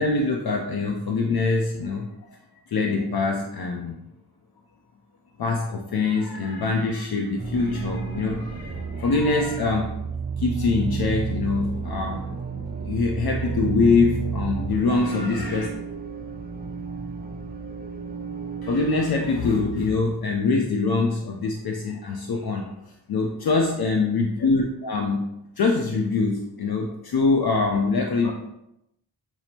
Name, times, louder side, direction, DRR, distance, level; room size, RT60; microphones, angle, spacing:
voice 1, 0.0-2.4 2.7-4.0 5.4-9.9 10.4-12.3 12.8-15.7 18.6-22.7 23.1-28.3, left 3 dB, 55° left, 1 dB, 0.5 m, -24 dB
sound 1, 7.4-19.7, right 5 dB, 25° right, 0.3 m, -31 dB
5.9 x 2.0 x 2.7 m, 0.85 s
wide cardioid pair, 80°, 45 cm